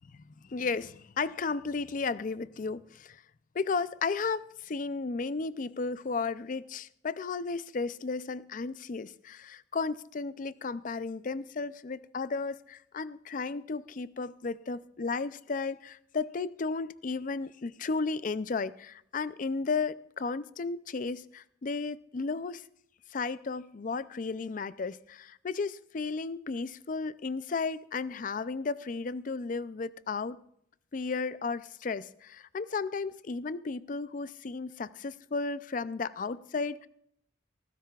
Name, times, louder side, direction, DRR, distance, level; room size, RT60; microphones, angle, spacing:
voice 1, 0.1-3.2 3.5-22.6 23.1-30.4 30.9-36.9, left 4 dB, 45° left, 0.4 m, -34 dB
18.5 x 15.0 x 2.4 m
head